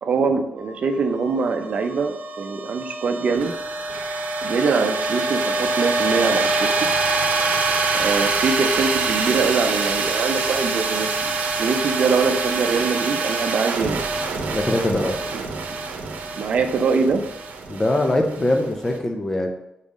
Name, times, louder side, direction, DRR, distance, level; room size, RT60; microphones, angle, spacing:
voice 1, 0.0-3.5 4.4-6.9 7.9-11.3 11.6-14.1 15.3-15.4 16.4-17.2, right 4 dB, 50° right, 6 dB, 0.6 m, -23 dB
sound 1, 0.6-18.9, right 3 dB, 85° right, 0.8 m, -25 dB
voice 2, 14.5-15.2 17.7-19.5, left 1 dB, 15° left, 3 dB, 0.5 m, -22 dB
5.5 x 4.1 x 5.0 m, 0.84 s
wide cardioid pair, 170°, 3 cm